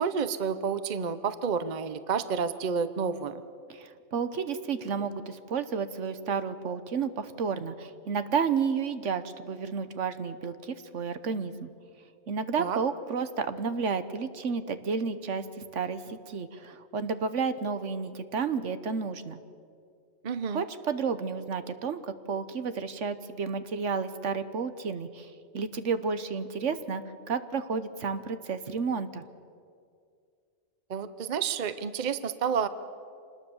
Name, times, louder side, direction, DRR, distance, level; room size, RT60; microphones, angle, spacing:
voice 1, 0.0-3.4 12.6-12.8 20.2-20.6 30.9-32.7, right 6 dB, 40° right, 12 dB, 0.9 m, -30 dB
voice 2, 3.7-11.7 12.3-15.5 15.7-19.4 20.5-22.0 22.3-27.0 27.3-29.2, right 5 dB, 70° right, 11 dB, 1.3 m, -31 dB
26.0 x 20.0 x 7.1 m, 2.3 s
omnidirectional pair, 1.3 m